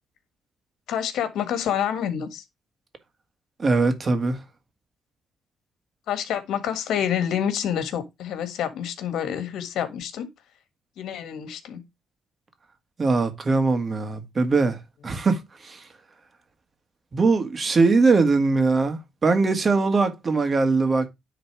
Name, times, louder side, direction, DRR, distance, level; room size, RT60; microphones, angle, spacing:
voice 1, 0.9-2.4 6.1-10.3 11.0-11.8, left 9 dB, 80° left, 1.6 m, -28 dB
voice 2, 3.6-4.4 13.0-14.8 15.0-15.8 17.1-21.1, right 3 dB, 35° right, 1.9 m, -21 dB
10.0 x 3.9 x 4.8 m
cardioid pair, 90°, 0 cm